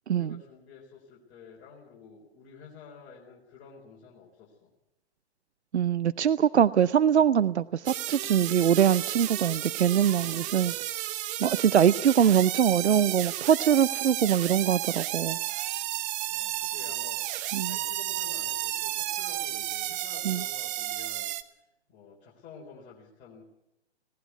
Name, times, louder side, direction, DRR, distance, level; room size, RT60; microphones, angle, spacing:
voice 1, 0.1-4.7 10.1-10.9 16.3-17.2 17.7-23.4, left 5 dB, 25° left, -3 dB, 4.2 m, -50 dB
voice 2, 5.7-10.7 11.4-15.4 17.5-17.7 20.2-20.4, right 9 dB, 75° right, 17 dB, 0.7 m, -23 dB
sound 1, 7.9-21.4, right 14 dB, 20° right, 0.9 m, -32 dB
19.0 x 18.0 x 8.3 m, 0.90 s
figure-of-eight pair, 125°, 34 cm